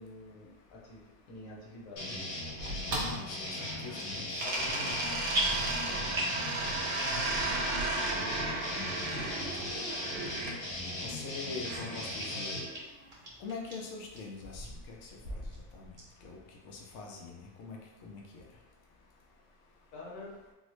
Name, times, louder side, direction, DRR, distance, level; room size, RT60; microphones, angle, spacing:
voice 1, 0.0-2.2 11.0-11.2 19.9-20.3, left 2 dB, 60° left, -3 dB, 1.0 m, -48 dB
sound 1, 2.0-12.6, left 1 dB, 75° left, 1.5 m, -38 dB
sound 2, 2.6-4.0 4.4-10.6 11.6-12.8, right 2 dB, 75° right, 0.6 m, -35 dB
voice 2, 2.9-5.3 5.9-6.2 6.6-6.8 7.7-7.8 8.7-9.1 9.4-9.8 11.0-12.7 13.4-15.1 15.7-15.9 16.2-16.4 16.7-18.2, left 4 dB, 90° left, 0 dB, 0.6 m, -44 dB
sound 3, 3.0-3.2 3.8-4.3 4.6-5.0 5.3-6.5 6.8-7.3 7.7-7.8 8.5-8.6 9.2-9.3 10.0-10.1 10.5-10.6 11.1-11.8 12.2-12.3 12.7-12.8 13.1-13.8 14.1-14.2 14.6-14.7 15.1-15.6 16.0-16.1, right 1 dB, 40° right, 0.9 m, -37 dB
3.8 x 2.0 x 3.0 m, 1.1 s
omnidirectional pair, 1.9 m